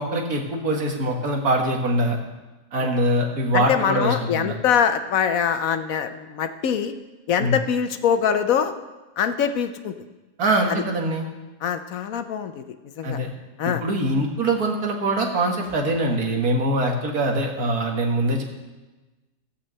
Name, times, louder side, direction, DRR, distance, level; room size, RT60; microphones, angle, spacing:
voice 1, 0.0-2.2 2.7-4.5 7.4-7.6 10.4-11.2 13.0-13.3 13.6-18.4, right 1 dB, 75° right, 2 dB, 2.0 m, -23 dB
voice 2, 3.5-6.9 7.3-8.7 9.2-9.9 10.7-10.8 11.6-13.2 13.6-13.8, left 8 dB, 70° left, 9 dB, 1.1 m, -23 dB
15.0 x 5.6 x 7.6 m, 1.1 s
omnidirectional pair, 1.6 m